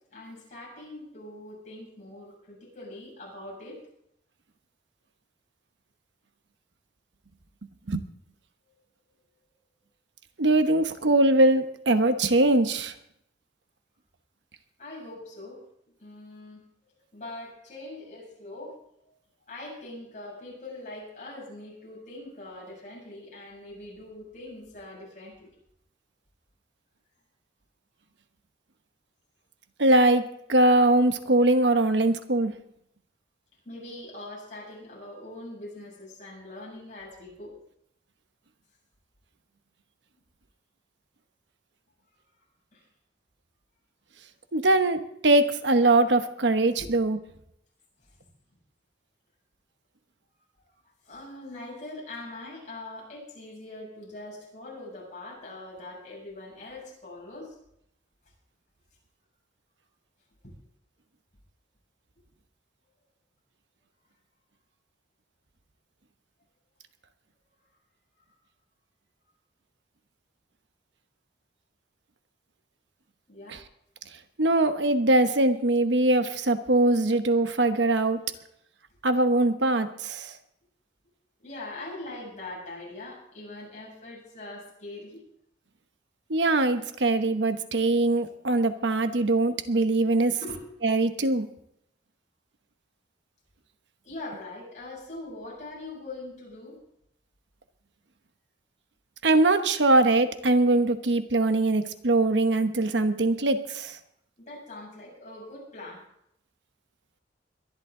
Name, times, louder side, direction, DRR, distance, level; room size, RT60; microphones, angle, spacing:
voice 1, 0.1-3.8 14.8-15.6 16.0-18.8 19.0-19.1 19.4-25.5 33.6-37.5 42.7-42.9 46.8-46.9 48.0-48.1 48.5-48.6 51.0-57.6 60.4-60.5 73.3-73.6 81.4-85.2 90.0-90.6 94.0-96.8 104.4-106.0, left 2 dB, 45° left, -3 dB, 7.4 m, -42 dB
voice 2, 10.4-12.9 29.8-30.2 30.5-32.5 44.5-47.2 74.4-78.2 79.0-80.3 86.3-90.3 90.8-91.5 99.2-104.0, right 2 dB, 80° right, 9 dB, 1.0 m, -22 dB
22.0 x 11.5 x 3.8 m, 0.75 s
head